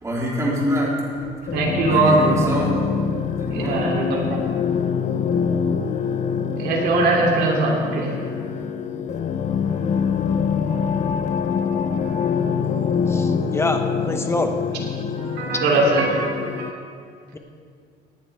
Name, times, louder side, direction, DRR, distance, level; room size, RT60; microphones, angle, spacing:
voice 1, 0.0-0.9 1.9-2.8 3.4-3.8, equal, 20° right, -4 dB, 3.6 m, -24 dB
sound 1, 1.5-16.7, left 6 dB, 45° left, 0.7 m, -25 dB
voice 2, 1.5-2.5 3.5-4.4 6.6-8.1 15.2-16.7, right 3 dB, 75° right, -2 dB, 3.0 m, -21 dB
voice 3, 13.1-14.6 17.3-17.4, left 2 dB, 15° left, 5 dB, 1.1 m, -25 dB
18.0 x 11.0 x 3.5 m, 2.2 s
cardioid pair, 110°, 17 cm